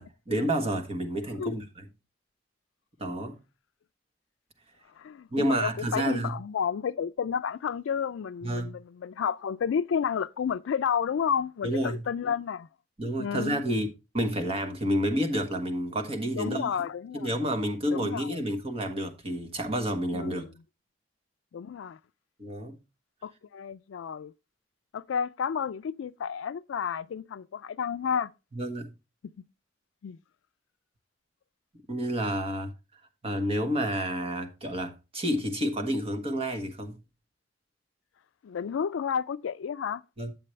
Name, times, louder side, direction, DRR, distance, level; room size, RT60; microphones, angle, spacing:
voice 1, 0.0-1.8 3.0-3.4 5.3-6.4 8.4-8.8 11.6-12.0 13.0-13.9 14.1-16.9 17.1-20.4 22.4-22.8 28.5-28.9 31.9-37.0 40.2-40.3, right 1 dB, 30° right, 1.2 m, -30 dB
voice 2, 5.0-12.7 13.2-13.6 16.3-17.3 17.9-18.4 20.1-20.5 21.5-22.0 23.2-24.3 24.9-28.3 30.0-30.2 38.4-40.0, left 7 dB, 85° left, 0.4 m, -31 dB
8.8 x 7.5 x 3.2 m
head